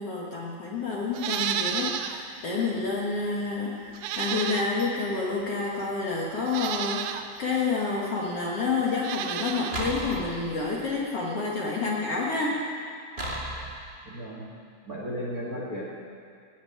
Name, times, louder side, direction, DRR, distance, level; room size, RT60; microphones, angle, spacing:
voice 1, 0.0-12.5, left 4 dB, 50° left, -4 dB, 2.1 m, -29 dB
Livestock farm animals working animals, 1.1-2.2 2.6-2.7 3.9-5.0 5.8-5.9 6.4-7.2 8.9-9.8 10.1-10.2, right 9 dB, 80° right, 2.4 m, -31 dB
sound 1, 9.7-10.9 13.2-13.9, equal, 65° right, 0.5 m, -34 dB
voice 2, 14.0-14.4 14.8-15.8, equal, 30° right, -4 dB, 1.8 m, -34 dB
17.5 x 7.3 x 9.9 m, 2.3 s
omnidirectional pair, 4.3 m